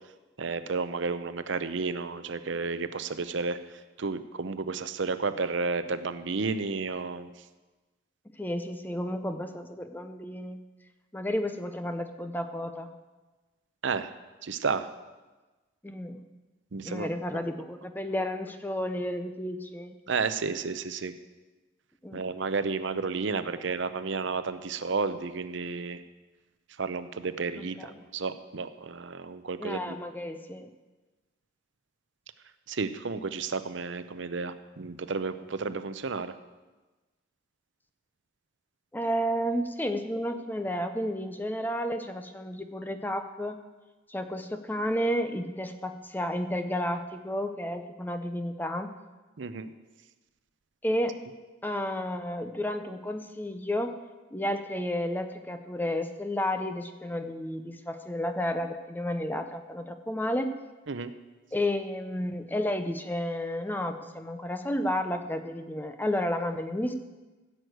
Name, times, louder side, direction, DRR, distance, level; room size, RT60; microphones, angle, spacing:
voice 1, 0.4-3.6 4.0-7.3 13.8-14.1 14.4-14.9 16.7-17.1 20.1-21.1 22.1-26.0 26.8-29.9 32.7-36.3 49.4-49.7 60.9-61.1, right 4 dB, 65° right, 11 dB, 0.6 m, -32 dB
voice 2, 8.4-10.6 11.1-12.9 15.8-16.2 16.8-19.9 22.0-22.3 27.6-27.9 29.6-30.7 38.9-43.6 44.1-48.9 50.8-51.2 51.6-53.9 54.3-60.5 61.5-66.9, left 1 dB, 10° left, 8 dB, 0.7 m, -32 dB
15.5 x 6.3 x 8.0 m, 1.2 s
head